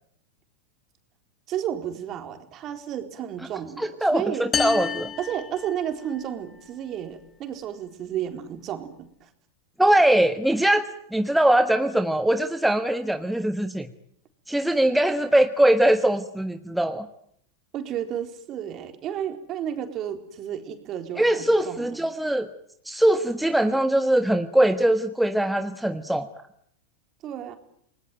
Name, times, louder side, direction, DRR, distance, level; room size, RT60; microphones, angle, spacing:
voice 1, 1.5-4.5 5.2-9.3 17.7-22.1 27.2-27.6, right 10 dB, 40° right, 7 dB, 4.0 m, -32 dB
voice 2, 3.8-5.1 9.8-13.9 14.5-17.1 21.2-22.5 22.8-26.3, right 1 dB, 5° right, 7 dB, 1.5 m, -21 dB
sound 1, 4.5-6.3, left 7 dB, 25° left, 1.3 m, -30 dB
29.0 x 19.5 x 9.2 m, 0.69 s
hypercardioid pair, 100°, 0 cm